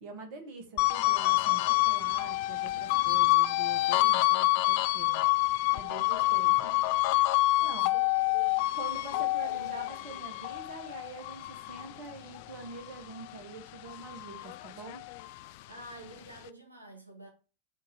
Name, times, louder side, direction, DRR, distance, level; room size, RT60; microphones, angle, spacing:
voice 1, 0.0-5.2 5.7-6.7 7.1-7.9 8.7-15.0, right 3 dB, 45° right, 1.6 m, -45 dB
sound 1, 0.8-13.4 13.8-15.5, left 20 dB, 50° left, 0.3 m, -27 dB
voice 2, 5.9-6.9 7.5-8.6 9.1-10.4 15.6-17.3, right 1 dB, 85° right, 1.5 m, -49 dB
6.3 x 3.0 x 5.5 m
figure-of-eight pair, 90°, 0 cm